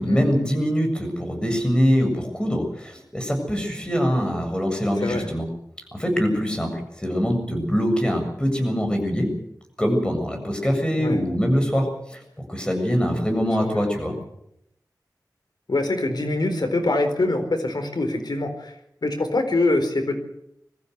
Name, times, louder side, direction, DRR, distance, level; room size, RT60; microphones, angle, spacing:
voice 1, 0.0-5.5 5.9-6.7 7.0-9.3 9.8-14.1, equal, 15° left, 3 dB, 7.3 m, -23 dB
voice 2, 5.0-5.3 11.0-11.2 13.6-13.8 15.7-18.7 19.0-20.2, left 2 dB, 80° left, 6 dB, 4.3 m, -24 dB
22.5 x 15.0 x 8.2 m, 0.77 s
wide cardioid pair, 70°, 7 cm